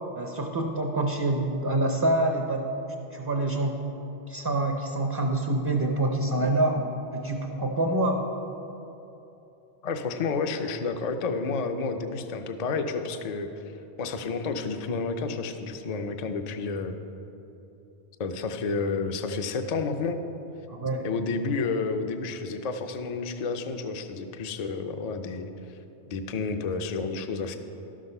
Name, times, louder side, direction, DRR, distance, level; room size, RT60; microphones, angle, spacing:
voice 1, 0.2-2.7 3.1-3.8 4.3-6.9 7.1-8.2 20.7-21.1, right 2 dB, 25° right, 2 dB, 0.6 m, -26 dB
voice 2, 9.8-13.5 14.0-17.0 18.2-20.2 21.0-25.8 26.1-27.6, left 4 dB, 45° left, 7 dB, 0.6 m, -30 dB
12.0 x 6.4 x 5.4 m, 3.0 s
omnidirectional pair, 1.1 m